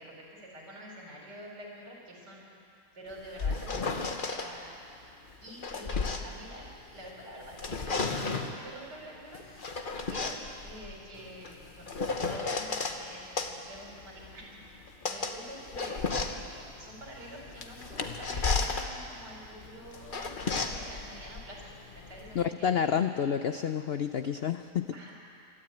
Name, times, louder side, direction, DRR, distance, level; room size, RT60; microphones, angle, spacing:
voice 1, 0.0-2.6 2.9-4.7 5.4-14.4 15.0-21.7 22.1-23.0 24.9-25.1, right 1 dB, 90° right, -2 dB, 5.0 m, -47 dB
sound 1, 3.1-4.5 5.3-7.1 7.4-8.6 9.3-13.0 13.4-22.5, left 4 dB, 35° left, 1.1 m, -34 dB
voice 2, 22.3-25.1, left 8 dB, 85° left, 9 dB, 0.5 m, -29 dB
23.5 x 12.5 x 9.0 m, 2.6 s
omnidirectional pair, 1.7 m